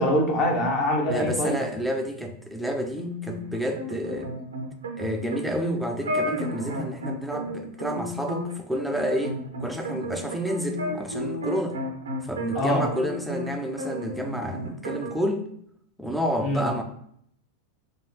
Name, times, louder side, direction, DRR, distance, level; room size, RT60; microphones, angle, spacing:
voice 1, 0.0-1.6 12.5-12.8 16.4-16.6, left 1 dB, 35° left, 0 dB, 0.9 m, -23 dB
voice 2, 1.1-4.3 5.0-11.8 12.2-15.5 16.0-16.8, equal, ahead, 3 dB, 0.4 m, -30 dB
sound 1, 3.0-13.5 13.8-15.1, equal, 70° right, 0.6 m, -33 dB
3.3 x 2.6 x 2.7 m, 0.68 s
figure-of-eight pair, 90°, 0 cm